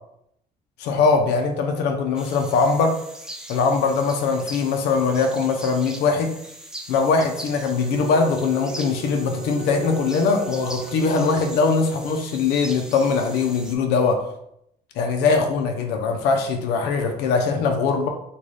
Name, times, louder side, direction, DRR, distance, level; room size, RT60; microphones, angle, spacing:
voice 1, 0.8-3.0 3.5-6.3 6.9-14.3 15.0-18.1, left 4 dB, 85° left, 4 dB, 0.5 m, -21 dB
sound 1, 2.2-13.8, right 1 dB, 5° right, 0.5 m, -41 dB
Wind instrument woodwind instrument, 7.7-12.1, right 8 dB, 75° right, 0.8 m, -37 dB
3.8 x 2.3 x 3.2 m, 0.75 s
cardioid pair, 110°, 17 cm